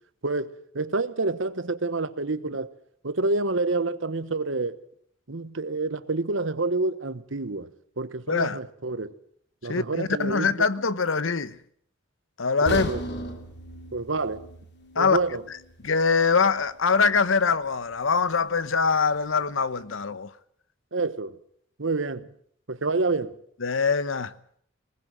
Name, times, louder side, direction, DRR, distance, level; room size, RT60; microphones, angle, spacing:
voice 1, 0.2-2.7 3.0-4.8 5.3-7.7 8.0-9.1 9.6-10.5 12.6-13.0 13.9-14.5 15.0-15.4 20.9-21.4 21.8-22.3 22.7-23.3, right 3 dB, 70° right, 1.2 m, -28 dB
voice 2, 8.3-8.6 9.7-11.6 12.4-12.9 15.0-15.2 15.8-20.3 23.6-24.3, left 5 dB, 80° left, 1.0 m, -23 dB
sound 1, 12.7-16.7 17.1-17.2 17.8-17.9, equal, 60° left, 2.6 m, -37 dB
21.0 x 19.0 x 7.6 m
head